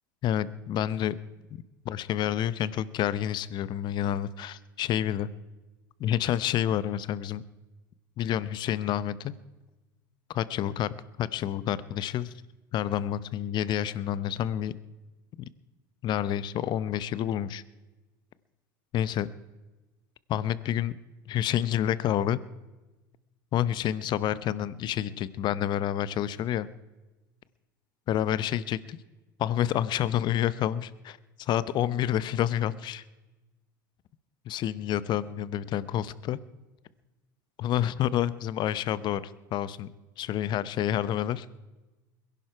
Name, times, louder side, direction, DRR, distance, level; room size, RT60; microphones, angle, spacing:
voice 1, 0.2-1.2 1.8-5.3 6.0-7.4 8.2-9.3 10.3-10.9 11.2-12.3 12.7-14.7 16.0-17.6 18.9-19.3 20.3-20.9 21.3-22.4 23.5-26.7 28.1-29.0 29.4-33.0 34.5-36.4 37.6-39.9 40.2-41.5, left 11 dB, 45° left, 18 dB, 0.7 m, -28 dB
22.0 x 11.0 x 4.6 m, 1.1 s
hypercardioid pair, 85°, 11 cm